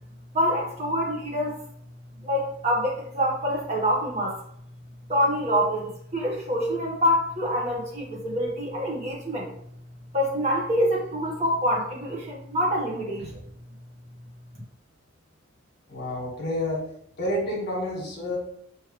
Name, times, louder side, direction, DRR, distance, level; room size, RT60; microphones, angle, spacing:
voice 1, 0.3-1.6 2.2-4.4 5.1-9.5 10.1-13.2, equal, 35° right, -2 dB, 1.2 m, -26 dB
voice 2, 15.9-16.8 17.2-18.4, left 1 dB, 55° left, -1 dB, 1.4 m, -29 dB
5.5 x 3.1 x 3.0 m, 0.68 s
head